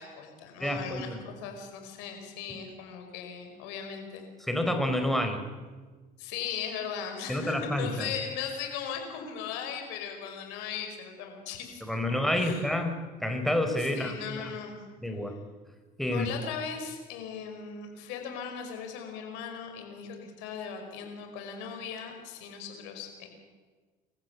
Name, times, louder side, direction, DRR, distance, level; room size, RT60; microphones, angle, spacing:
voice 1, 0.0-4.3 6.2-11.8 12.1-12.6 13.8-14.8 16.1-23.3, left 7 dB, 85° left, 4 dB, 5.5 m, -38 dB
voice 2, 0.6-1.2 4.4-5.4 7.3-8.1 11.8-14.5 15.0-15.4 16.0-16.3, left 1 dB, ahead, 5 dB, 4.1 m, -29 dB
26.0 x 15.0 x 8.2 m, 1.4 s
supercardioid pair, 90°, 18 cm